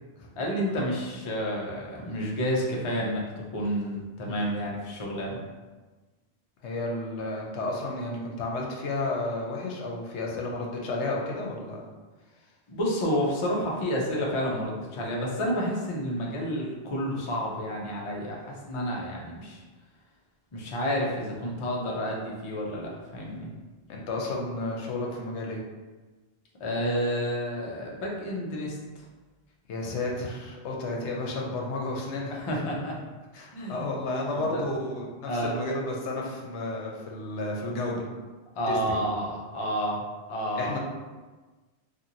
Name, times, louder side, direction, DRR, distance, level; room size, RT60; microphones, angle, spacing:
voice 1, 0.4-3.2 3.5-5.4 12.7-19.6 20.5-23.5 26.6-28.8 32.3-33.0 33.5-33.9 34.3-34.6 35.2-35.6 38.6-40.0 40.3-40.8, equal, 40° left, -3 dB, 0.4 m, -30 dB
voice 2, 6.6-11.8 23.9-25.6 29.7-32.4 33.3-38.1 38.7-39.0 40.6-40.8, left 2 dB, 80° left, -1 dB, 0.9 m, -32 dB
2.8 x 2.5 x 2.6 m, 1.3 s
omnidirectional pair, 1.2 m